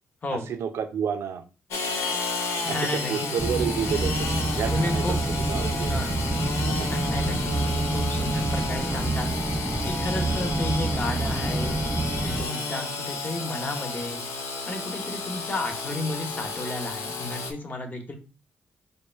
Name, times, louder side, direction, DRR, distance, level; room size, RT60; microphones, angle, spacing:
voice 1, 0.3-1.4 2.6-2.8 3.1-4.3 4.6-5.0 5.5-6.0 6.7-6.9, right 8 dB, 75° right, 7 dB, 0.5 m, -30 dB
Engine / Sawing, 1.7-17.5, left 3 dB, 85° left, 0.6 m, -32 dB
voice 2, 2.6-3.3 4.7-5.2 5.9-6.1 6.9-9.3 9.8-14.2 14.7-18.2, left 2 dB, 40° left, 5 dB, 0.9 m, -33 dB
sound 1, 3.4-12.5, right 2 dB, 10° right, 0.3 m, -27 dB
3.4 x 2.3 x 4.3 m, 0.34 s
cardioid pair, 60°, 5 cm